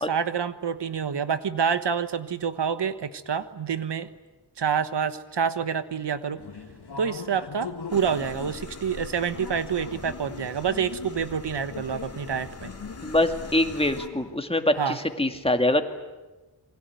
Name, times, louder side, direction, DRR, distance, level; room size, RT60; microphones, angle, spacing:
voice 1, 0.1-4.1 4.6-6.4 7.0-12.7 14.8-15.0, right 7 dB, 85° right, 11 dB, 1.3 m, -27 dB
sound 1, 6.4-14.4, left 5 dB, 70° left, 1.9 m, -41 dB
sound 2, 7.9-14.1, left 3 dB, 35° left, 2.4 m, -43 dB
voice 2, 13.0-15.8, left 1 dB, 15° left, 6 dB, 2.2 m, -24 dB
27.5 x 22.5 x 9.3 m, 1.1 s
wide cardioid pair, 105°, 40 cm